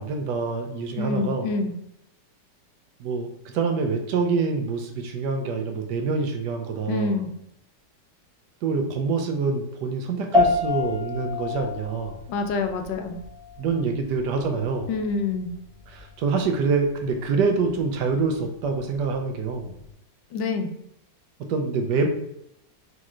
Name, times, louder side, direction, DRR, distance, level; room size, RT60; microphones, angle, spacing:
voice 1, 0.0-1.5 3.0-7.1 8.6-12.2 13.6-14.9 15.9-19.8 21.5-22.1, right 4 dB, 75° right, 4 dB, 1.2 m, -26 dB
voice 2, 1.0-1.7 6.9-7.3 12.3-13.2 14.9-15.6 20.3-20.7, left 4 dB, 80° left, 5 dB, 1.3 m, -26 dB
sound 1, 10.3-19.9, left 3 dB, 30° right, 0.6 m, -30 dB
5.3 x 3.0 x 2.4 m, 0.79 s
omnidirectional pair, 2.0 m